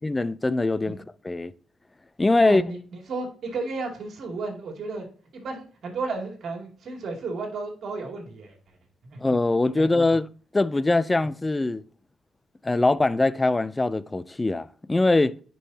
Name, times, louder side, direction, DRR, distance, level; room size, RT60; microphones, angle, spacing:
voice 1, 0.0-1.0 1.2-1.5 2.2-2.6 9.2-10.3 10.5-11.8 12.6-15.4, left 2 dB, 20° left, 0.4 m, -22 dB
voice 2, 2.4-2.8 3.1-5.1 5.3-8.6 9.0-9.2 9.7-10.2 12.7-12.8, right 3 dB, 60° right, 2.5 m, -33 dB
9.8 x 5.5 x 2.8 m
cardioid pair, 90°, 0 cm